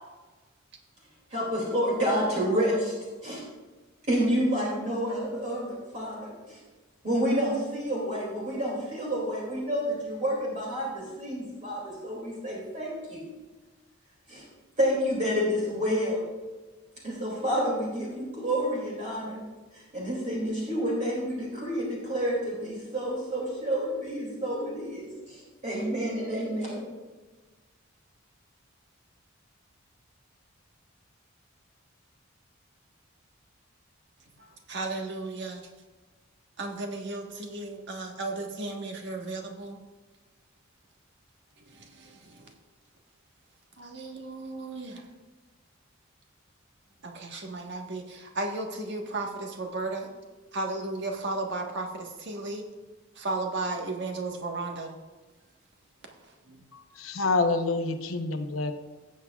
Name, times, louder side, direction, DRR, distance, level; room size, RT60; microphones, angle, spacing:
voice 1, 1.3-2.9 3.2-3.4 4.1-6.6 7.0-13.3 14.3-14.4 14.8-16.2 17.0-19.4 19.7-26.9, equal, 40° right, -4 dB, 2.6 m, -29 dB
voice 2, 34.7-35.6 36.6-39.8 41.8-42.3 43.8-45.0 47.0-50.1 50.5-52.6 53.2-54.9 56.5-56.6, right 2 dB, 60° right, 2 dB, 1.4 m, -34 dB
voice 3, 56.7-58.7, left 3 dB, 85° left, 7 dB, 0.9 m, -27 dB
17.5 x 7.4 x 2.4 m, 1.3 s
head